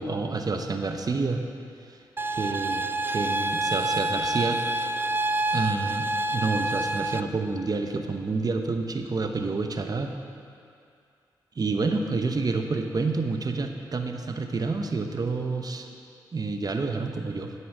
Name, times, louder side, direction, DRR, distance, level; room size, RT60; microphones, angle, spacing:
voice 1, 0.0-1.4 2.3-4.6 5.5-10.1 11.6-15.9 16.3-17.5, right 3 dB, 45° right, 5 dB, 1.0 m, -28 dB
sound 1, 2.2-7.2, right 2 dB, 25° right, 0.4 m, -27 dB
9.7 x 7.9 x 6.2 m, 2.4 s
cardioid pair, 50°, 9 cm